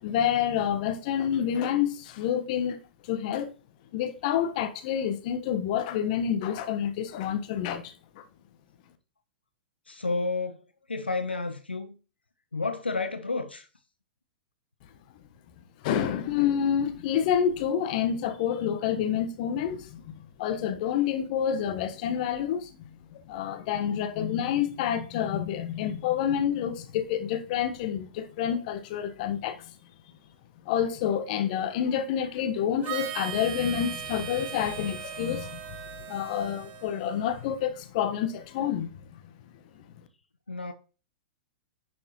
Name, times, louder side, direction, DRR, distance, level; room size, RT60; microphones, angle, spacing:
voice 1, 0.0-3.5 3.9-8.2 15.8-22.7 23.1-29.8 30.6-39.1 39.7-39.8, left 9 dB, 50° left, 1.3 m, -28 dB
voice 2, 9.9-10.6 10.9-11.9 12.5-13.7 40.5-40.7, left 3 dB, 85° left, 0.9 m, -31 dB
Harmonica, 32.8-37.6, right 10 dB, 35° right, 1.5 m, -39 dB
10.0 x 6.2 x 3.1 m
figure-of-eight pair, 105°, 5 cm